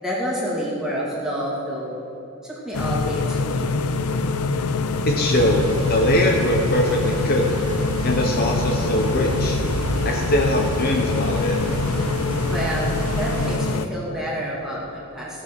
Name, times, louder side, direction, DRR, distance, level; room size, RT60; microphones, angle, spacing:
voice 1, 0.0-2.0 2.4-3.7 12.5-15.4, equal, 5° right, -6 dB, 2.4 m, -28 dB
sound 1, 2.7-13.9, left 3 dB, 85° left, 0.6 m, -24 dB
voice 2, 5.0-7.6 8.0-9.6 10.0-11.6, left 1 dB, 45° left, 1 dB, 0.9 m, -22 dB
sound 2, 5.3-13.6, right 3 dB, 70° right, 0.6 m, -30 dB
17.0 x 6.4 x 6.0 m, 2.8 s
head